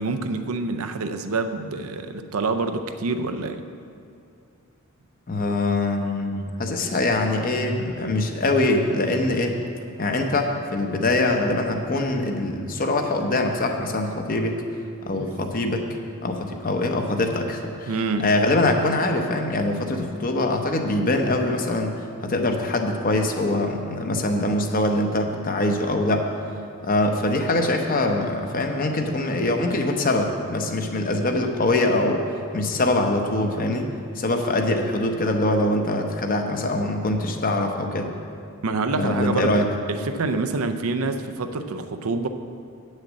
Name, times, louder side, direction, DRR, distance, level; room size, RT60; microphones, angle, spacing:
voice 1, 0.0-3.6 15.1-15.3 17.9-18.3 38.6-42.3, right 3 dB, 70° right, 8 dB, 0.6 m, -27 dB
voice 2, 5.3-9.6 10.0-14.6 15.1-16.0 16.2-26.3 26.8-33.9 34.1-38.1 38.9-39.7, left 2 dB, 40° left, 4 dB, 0.8 m, -23 dB
8.5 x 6.5 x 7.3 m, 2.5 s
head